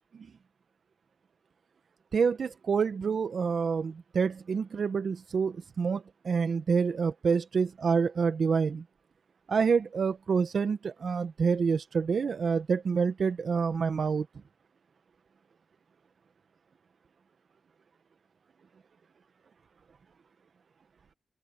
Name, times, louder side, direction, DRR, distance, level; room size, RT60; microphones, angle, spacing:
voice 1, 2.1-8.8 9.5-14.2, right 5 dB, 70° right, 1.3 m, -27 dB
open air
supercardioid pair, 40°, 0 cm